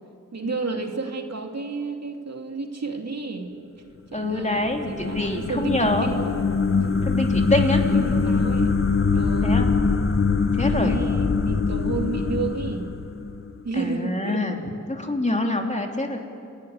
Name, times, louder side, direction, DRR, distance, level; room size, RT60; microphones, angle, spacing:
voice 1, 0.3-3.5 4.1-6.4 6.8-6.9 7.5-8.7 9.1-9.6 10.7-12.9 13.6-14.6, right 4 dB, 55° right, 2 dB, 2.6 m, -31 dB
voice 2, 4.1-6.1 7.0-7.8 9.4-9.7 10.6-11.0 13.7-14.6 14.9-16.2, left 2 dB, 25° left, 2 dB, 3.0 m, -25 dB
sound 1, 4.3-13.6, left 4 dB, 45° left, 1.2 m, -23 dB
29.0 x 13.0 x 9.6 m, 2.5 s
cardioid pair, 50°, 31 cm